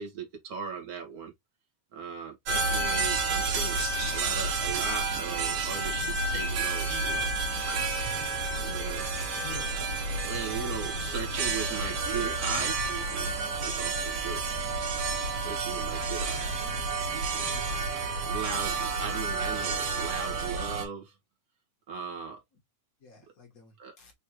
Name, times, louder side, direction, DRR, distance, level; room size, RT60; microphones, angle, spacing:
voice 1, 0.0-1.3 1.9-3.8 4.1-7.3 8.6-9.1 10.2-12.8 13.1-14.4 15.4-16.5 18.3-21.1 21.9-22.4 23.8-23.9, right 6 dB, 45° right, 1.2 m, -38 dB
sound 1, 2.5-20.9, right 3 dB, 60° right, 2.2 m, -30 dB
voice 2, 17.4-18.2 23.0-24.1, left 4 dB, 40° left, 1.5 m, -49 dB
5.3 x 3.1 x 3.0 m
omnidirectional pair, 3.3 m